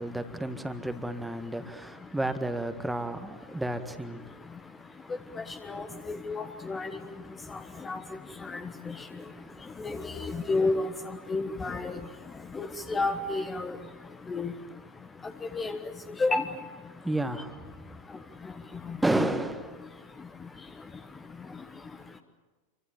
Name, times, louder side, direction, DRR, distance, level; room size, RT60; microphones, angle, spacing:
voice 1, 0.0-4.3 9.3-9.7 17.0-17.9 19.0-19.9, right 1 dB, 5° right, 1.7 m, -32 dB
voice 2, 6.3-7.0 7.8-8.0 8.5-8.6 8.9-9.0 9.8-10.9 11.3-12.0 12.5-13.8 14.3-14.5 15.5-15.8 16.2-16.4, left 3 dB, 15° left, 1.3 m, -29 dB
28.5 x 24.5 x 7.2 m
figure-of-eight pair, 90°, 0 cm